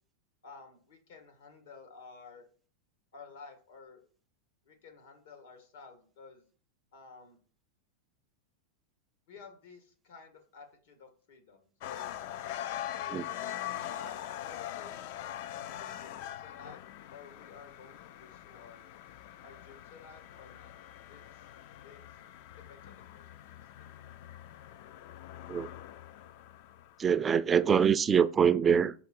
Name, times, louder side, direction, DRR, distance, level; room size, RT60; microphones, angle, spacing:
voice 1, 0.4-2.5 3.1-4.0 4.7-6.5 6.9-7.4 9.3-12.2 12.9-15.3 15.5-16.8 17.1-18.9 19.4-20.7 21.1-21.5 21.8-22.2 22.6-23.6, left 5 dB, 80° left, 2.0 m, -53 dB
sound 1, 11.8-27.1, left 12 dB, 55° left, 0.4 m, -43 dB
voice 2, 27.0-28.9, right 7 dB, 20° right, 0.3 m, -24 dB
5.7 x 5.1 x 4.5 m
supercardioid pair, 140°, 0 cm